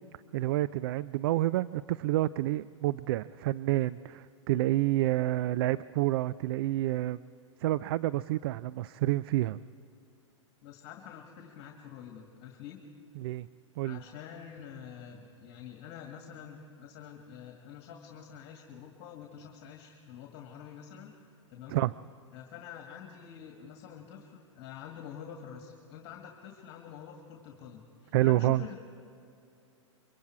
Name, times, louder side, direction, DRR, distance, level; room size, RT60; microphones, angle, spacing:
voice 1, 0.3-7.2 7.6-9.6 13.2-13.5 13.8-14.0 21.7-21.9 28.1-28.6, right 16 dB, 50° right, 18 dB, 0.4 m, -28 dB
voice 2, 10.6-12.8 13.8-21.1 21.5-21.8 22.3-28.8, left 8 dB, 40° left, 2 dB, 2.2 m, -47 dB
24.0 x 23.5 x 4.8 m, 2.6 s
hypercardioid pair, 120°, 16 cm